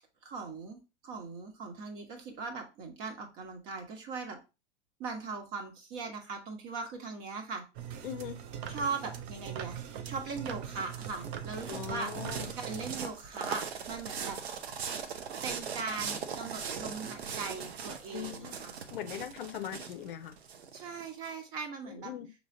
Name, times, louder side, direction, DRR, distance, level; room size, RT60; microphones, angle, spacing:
voice 1, 0.2-0.8 1.0-4.4 5.0-7.6 8.7-12.1 12.6-14.4 15.4-18.8 20.7-22.1, right 4 dB, 40° right, 1.3 m, -39 dB
sound 1, 7.8-13.0, right 9 dB, 20° right, 0.3 m, -41 dB
voice 2, 8.0-8.4 11.7-12.5 18.1-18.6 18.9-20.4 21.9-22.3, left 11 dB, 50° left, 0.6 m, -40 dB
sound 2, 10.5-21.3, right 6 dB, 60° right, 0.9 m, -40 dB
6.1 x 3.3 x 2.6 m
figure-of-eight pair, 95°, 35 cm